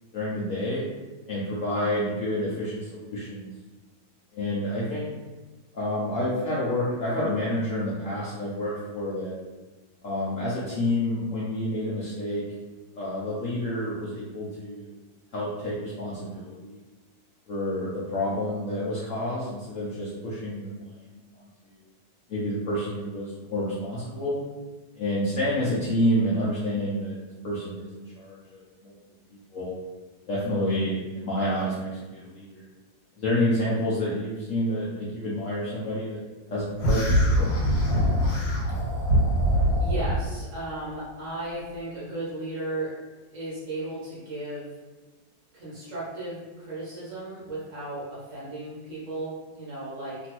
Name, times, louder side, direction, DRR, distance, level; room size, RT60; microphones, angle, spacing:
voice 1, 0.1-0.9 1.3-3.5 4.3-5.1 5.7-9.3 10.0-12.4 12.9-15.0 15.3-16.8 17.5-21.5 22.3-24.4 25.0-27.2 27.4-28.9 29.3-29.7 30.3-32.7 33.2-36.2 36.5-37.5, left 1 dB, 65° left, -7 dB, 0.8 m, -29 dB
sound 1, 36.8-40.2, equal, 85° left, 1.5 m, -23 dB
voice 2, 39.8-42.9 43.3-44.7 45.5-50.2, right 2 dB, 55° right, -7 dB, 0.9 m, -35 dB
3.0 x 2.6 x 2.8 m, 1.2 s
omnidirectional pair, 2.0 m